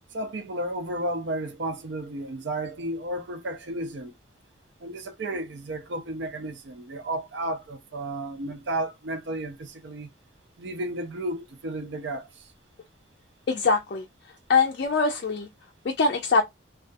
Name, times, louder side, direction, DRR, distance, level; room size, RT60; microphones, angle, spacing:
voice 1, 0.1-4.1 4.8-10.1 10.6-12.3, right 1 dB, 65° right, 0.5 m, -33 dB
voice 2, 13.5-14.0 14.5-15.5 16.0-16.4, left 4 dB, 55° left, 0.4 m, -22 dB
2.3 x 2.3 x 2.4 m
head